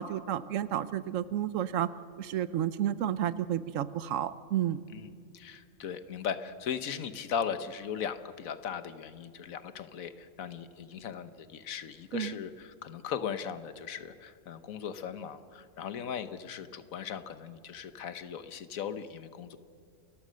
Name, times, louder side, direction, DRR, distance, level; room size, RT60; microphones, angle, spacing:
voice 1, 0.0-1.9 2.2-4.8 12.1-12.4, right 11 dB, 75° right, 16 dB, 1.0 m, -31 dB
voice 2, 4.9-19.6, left 7 dB, 90° left, 12 dB, 1.3 m, -38 dB
29.0 x 14.0 x 6.3 m, 2.2 s
omnidirectional pair, 1.4 m